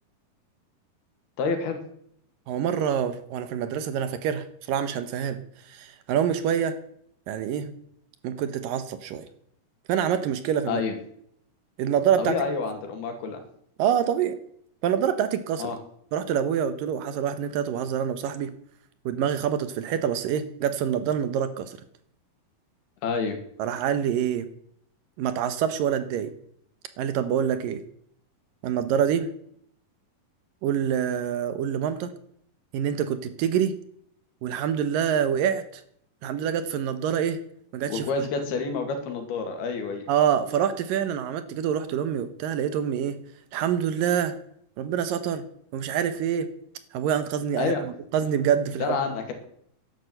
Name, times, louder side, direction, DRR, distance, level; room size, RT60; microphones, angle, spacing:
voice 1, 1.4-1.8 10.7-11.0 12.2-13.4 15.6-15.8 23.0-23.4 37.9-40.1 47.6-47.8 48.8-49.3, left 4 dB, 85° left, 6 dB, 4.2 m, -28 dB
voice 2, 2.5-6.8 7.3-7.7 8.2-9.3 9.9-10.8 11.8-12.4 13.8-14.4 14.8-15.7 16.1-18.5 19.1-21.8 23.6-24.5 25.2-26.3 27.0-27.8 28.6-29.3 30.6-32.1 32.7-33.8 34.4-35.8 36.2-37.4 37.7-38.0 40.1-43.2 43.5-44.4 44.8-45.4 45.7-46.5 46.9-49.0, right 8 dB, 70° right, 12 dB, 2.5 m, -26 dB
11.5 x 10.5 x 7.9 m, 0.68 s
omnidirectional pair, 4.4 m